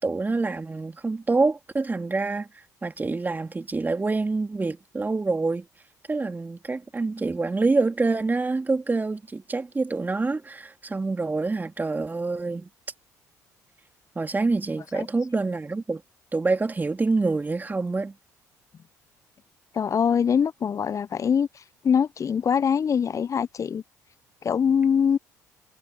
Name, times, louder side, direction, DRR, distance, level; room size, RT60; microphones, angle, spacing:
voice 1, 0.0-5.7 6.1-12.7 14.1-16.0 16.3-18.1, right 3 dB, 20° right, 3.4 m, -26 dB
voice 2, 19.7-23.8 24.4-25.2, left 7 dB, 35° left, 1.0 m, -23 dB
figure-of-eight pair, 50°, 9 cm